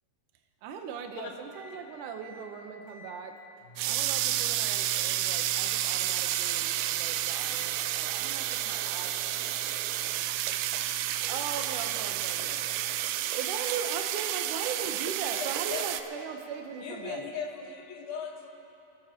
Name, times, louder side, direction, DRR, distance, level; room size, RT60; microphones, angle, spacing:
voice 1, 0.6-3.3 3.9-9.1 10.1-10.3 11.3-17.3, right 7 dB, 70° right, 4 dB, 2.2 m, -39 dB
sound 1, 1.5-1.8 2.2-2.5 2.9-13.4 13.8-14.4 14.8-15.3 15.7-16.3 16.7-17.2, left 1 dB, 50° left, 2.3 m, -52 dB
sound 2, 3.8-16.0, right 13 dB, 85° right, 2.4 m, -30 dB
voice 2, 7.5-8.0 9.0-10.3, right 3 dB, 40° right, -3 dB, 2.9 m, -56 dB
voice 3, 16.8-18.5, left 6 dB, 75° left, 0 dB, 3.2 m, -38 dB
29.0 x 14.0 x 3.0 m, 2.8 s
omnidirectional pair, 4.3 m